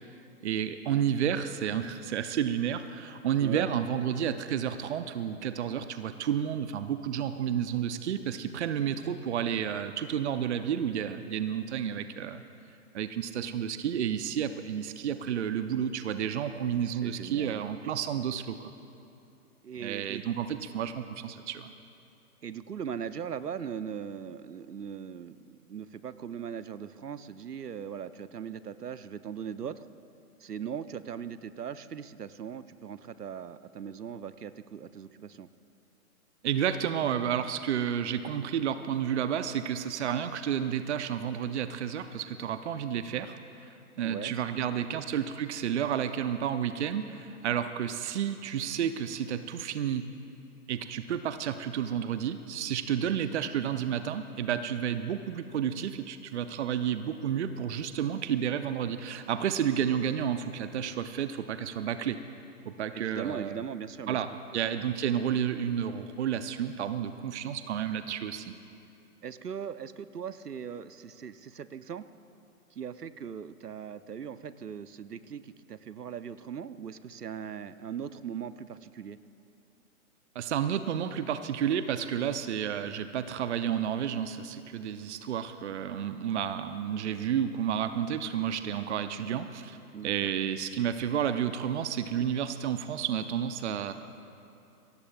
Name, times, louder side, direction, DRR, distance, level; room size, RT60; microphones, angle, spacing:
voice 1, 0.4-12.4 12.9-18.7 19.8-21.7 36.4-50.0 50.7-62.2 62.7-63.6 64.1-64.3 64.5-68.5 80.3-89.8 90.0-93.9, right 9 dB, 50° right, 10 dB, 0.7 m, -31 dB
voice 2, 16.8-17.6 19.6-20.2 22.4-29.9 30.4-35.5 44.0-44.3 44.9-45.0 62.9-64.2 69.2-72.1 72.7-79.2 89.9-90.3, right 8 dB, 90° right, 14 dB, 0.7 m, -39 dB
23.0 x 17.5 x 2.4 m, 2.8 s
figure-of-eight pair, 130°, 45 cm